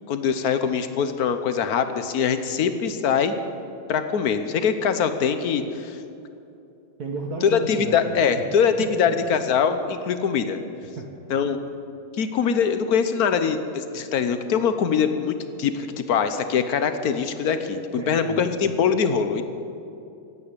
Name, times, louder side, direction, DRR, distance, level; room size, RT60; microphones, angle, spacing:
voice 1, 0.1-3.3 3.9-6.0 7.5-8.7 9.0-10.6 11.3-11.6 12.2-19.4, left 7 dB, 60° left, 9 dB, 1.1 m, -23 dB
voice 2, 7.0-8.5 8.7-9.1 10.9-11.1 18.0-18.4, right 3 dB, 55° right, 1 dB, 1.6 m, -33 dB
15.0 x 9.5 x 8.3 m, 2.8 s
omnidirectional pair, 2.2 m